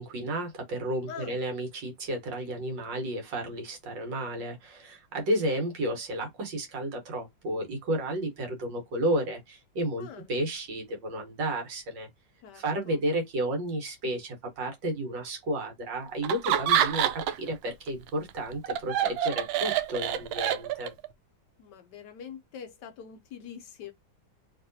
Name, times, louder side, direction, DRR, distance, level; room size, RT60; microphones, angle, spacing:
voice 1, 0.0-12.1 12.5-20.9, right 1 dB, 70° right, 1.8 m, -32 dB
voice 2, 1.1-1.4 10.0-10.3 12.4-13.0 21.6-23.9, left 7 dB, 70° left, 1.1 m, -44 dB
Laughter, 16.2-17.5 17.9-21.1, right 10 dB, 90° right, 1.3 m, -27 dB
3.3 x 2.8 x 2.6 m
omnidirectional pair, 2.1 m